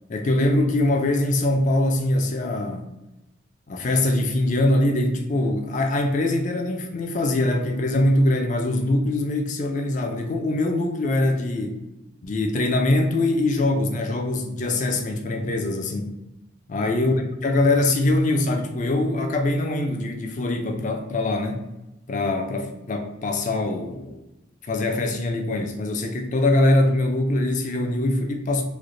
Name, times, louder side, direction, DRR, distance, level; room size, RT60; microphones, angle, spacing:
voice 1, 0.1-2.9 3.7-11.8 12.2-16.1 16.7-21.7 22.1-24.2 24.6-28.6, left 2 dB, 40° left, 0.4 m, -23 dB
3.2 x 2.1 x 3.7 m
head